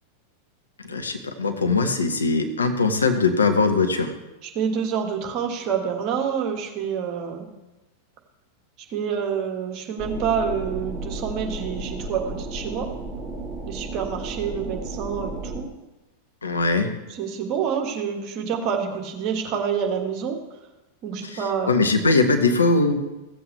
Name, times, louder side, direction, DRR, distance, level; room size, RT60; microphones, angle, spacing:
voice 1, 0.8-4.1 16.4-16.9 21.2-21.4 21.7-22.9, left 3 dB, 75° left, 6 dB, 1.1 m, -21 dB
voice 2, 4.5-7.5 8.9-12.9 13.6-15.6 17.1-20.4 21.0-21.7, right 7 dB, 40° right, 3 dB, 1.6 m, -27 dB
sound 1, 10.0-15.6, right 3 dB, 10° right, 2.3 m, -33 dB
15.5 x 7.8 x 3.3 m, 1.1 s
figure-of-eight pair, 90°, 0 cm